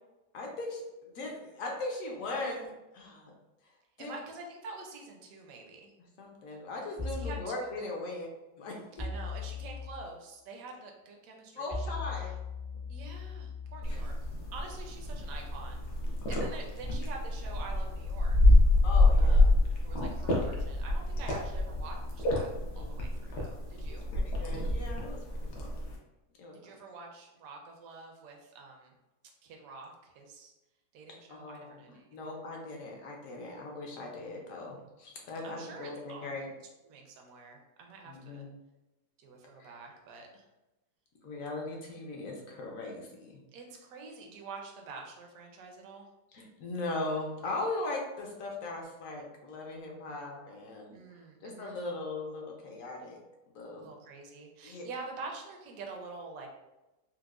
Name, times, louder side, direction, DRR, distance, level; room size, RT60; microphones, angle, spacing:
voice 1, 0.3-3.3 4.0-4.2 6.2-8.3 8.6-8.8 11.5-12.3 13.9-14.0 18.8-19.5 22.6-23.0 23.9-25.2 25.6-25.8 26.4-26.8 31.3-36.5 38.1-38.5 39.6-39.7 41.2-43.3 46.3-51.0 51.4-53.2 53.5-53.9 54.6-54.8, left 2 dB, 65° left, 0 dB, 0.9 m, -39 dB
voice 2, 4.0-5.9 7.0-7.9 9.0-12.3 12.9-14.2 14.5-15.9 16.3-18.6 19.2-19.4 19.8-22.5 22.8-24.1 26.5-28.9 29.4-30.5 30.9-32.4 35.4-36.5 36.8-38.5 39.2-40.4 43.5-46.1 50.9-51.8 53.7-56.5, right 3 dB, 65° right, 2 dB, 1.0 m, -47 dB
sound 1, 7.0-7.4 9.0-9.9 11.7-23.1, left 4 dB, 40° right, 0.5 m, -42 dB
sound 2, 13.8-26.0, left 1 dB, 80° left, 1.3 m, -27 dB
4.5 x 2.1 x 2.4 m, 1.0 s
omnidirectional pair, 1.7 m